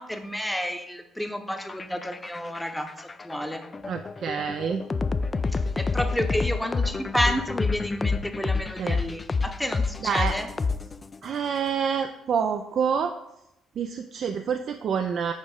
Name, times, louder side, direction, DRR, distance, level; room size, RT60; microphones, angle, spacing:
voice 1, 0.0-3.6 5.5-10.5, equal, 5° left, 6 dB, 0.8 m, -31 dB
sound 1, 1.5-11.2, left 4 dB, 30° left, 0.3 m, -28 dB
voice 2, 3.9-4.8 8.8-9.0 10.0-10.3 11.2-13.1 13.8-15.3, right 7 dB, 55° right, 7 dB, 0.3 m, -27 dB
6.3 x 5.0 x 3.6 m, 0.85 s
hypercardioid pair, 50°, 0 cm